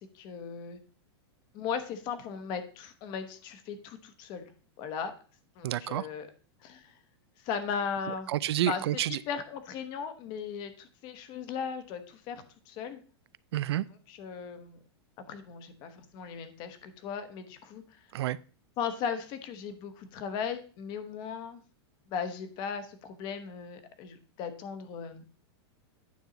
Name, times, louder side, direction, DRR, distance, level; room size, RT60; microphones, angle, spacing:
voice 1, 0.1-0.8 1.5-4.5 4.8-5.1 5.6-6.3 6.6-6.9 7.4-8.3 8.7-13.0 14.1-14.8 15.3-18.0 18.8-21.6 22.1-25.2, left 6 dB, 30° left, 1.0 m, -37 dB
voice 2, 5.6-6.1 8.3-9.2 13.5-13.8 18.1-18.4, right 13 dB, 65° right, 0.4 m, -29 dB
9.5 x 6.2 x 4.0 m
supercardioid pair, 165°, 14 cm